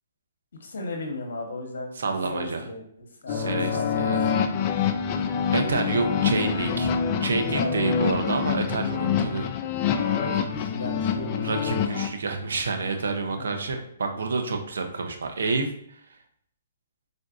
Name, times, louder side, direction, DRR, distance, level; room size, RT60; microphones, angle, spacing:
voice 1, 0.6-1.9 2.3-4.5 7.3-7.9 10.1-11.8 13.3-13.5, left 2 dB, 75° left, 2 dB, 0.8 m, -36 dB
voice 2, 2.0-2.6 3.3-4.2 5.2-6.9 7.2-9.5 11.4-16.0, right 4 dB, 80° right, 5 dB, 0.5 m, -28 dB
sound 1, 3.3-12.1, left 7 dB, 35° left, 0.3 m, -26 dB
3.7 x 2.5 x 2.4 m, 0.67 s
hypercardioid pair, 145°, 0 cm